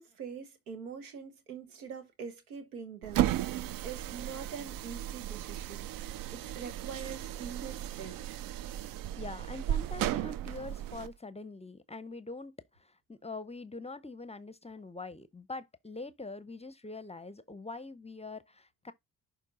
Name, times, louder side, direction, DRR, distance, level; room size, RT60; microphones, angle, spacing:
voice 1, 0.0-8.4, right 6 dB, 80° right, 1.2 m, -44 dB
sound 1, 3.0-11.1, right 13 dB, 50° right, 0.5 m, -35 dB
voice 2, 9.2-18.9, left 3 dB, 15° left, 0.7 m, -44 dB
11.0 x 3.8 x 2.5 m
figure-of-eight pair, 40°, 44 cm